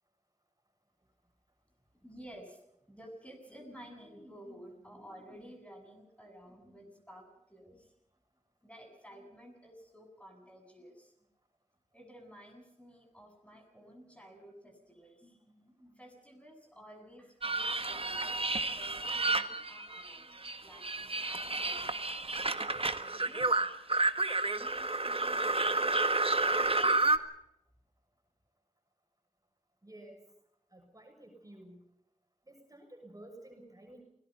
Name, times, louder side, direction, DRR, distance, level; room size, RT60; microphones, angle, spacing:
voice 1, 2.0-7.9 8.6-11.1 11.9-22.0 22.9-23.7 24.4-27.0, equal, 10° left, 3 dB, 7.5 m, -54 dB
sound 1, 17.4-20.2 20.4-27.2, right 2 dB, 45° right, 1.4 m, -30 dB
voice 2, 29.8-30.2 30.7-31.9 32.4-34.0, right 1 dB, 25° right, 2 dB, 6.7 m, -53 dB
28.0 x 19.5 x 5.6 m, 0.80 s
wide cardioid pair, 55°, 13 cm